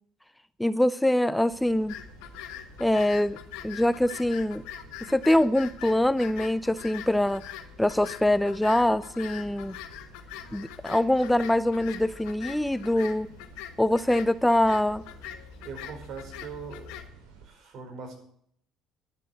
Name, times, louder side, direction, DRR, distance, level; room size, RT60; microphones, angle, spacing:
voice 1, 0.6-1.9 2.8-3.4 3.6-4.6 5.0-7.4 7.8-9.8 10.5-13.3 13.8-15.0, left 1 dB, 5° left, 17 dB, 0.4 m, -24 dB
sound 1, 1.5-17.5, right 5 dB, 80° right, 3.2 m, -52 dB
sound 2, 1.9-17.1, left 10 dB, 80° left, 1.4 m, -43 dB
voice 2, 15.6-16.9 17.4-18.1, right 5 dB, 60° right, 3 dB, 4.8 m, -41 dB
11.5 x 7.5 x 8.1 m, 0.65 s
supercardioid pair, 70°, 0 cm